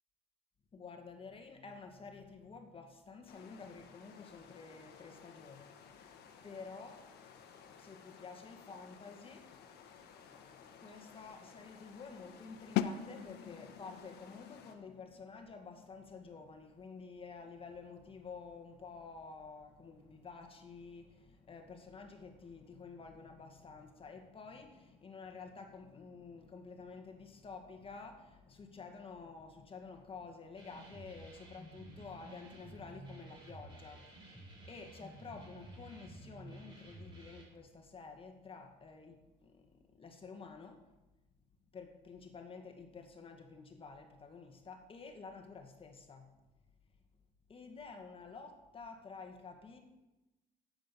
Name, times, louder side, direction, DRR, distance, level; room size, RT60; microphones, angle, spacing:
voice 1, 0.7-7.2 7.8-9.5 9.7-40.9 41.7-46.3 47.5-49.8, left 4 dB, 35° left, 1.9 m, -51 dB
sound 1, 3.3-14.7, left 7 dB, 75° left, 1.5 m, -57 dB
sound 2, 12.8-18.5, left 11 dB, 90° left, 0.6 m, -42 dB
sound 3, 30.5-37.4, right 1 dB, 30° right, 5.1 m, -53 dB
10.0 x 8.1 x 7.0 m
cardioid pair, 110°, 17 cm